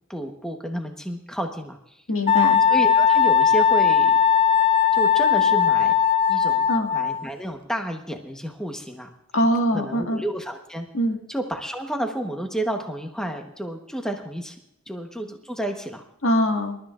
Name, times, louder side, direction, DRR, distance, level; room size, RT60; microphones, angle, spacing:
voice 1, 0.1-2.0 2.7-4.1 4.9-5.9 6.3-9.1 9.7-10.9 11.3-14.6 14.9-16.0, right 1 dB, 5° left, 3 dB, 1.1 m, -31 dB
voice 2, 2.1-2.6 6.7-6.9 9.3-10.2 10.9-11.2 16.2-16.8, equal, 70° left, 3 dB, 1.8 m, -22 dB
Wind instrument woodwind instrument, 2.3-7.3, left 7 dB, 25° left, 0.9 m, -18 dB
26.5 x 13.0 x 2.5 m, 0.78 s
head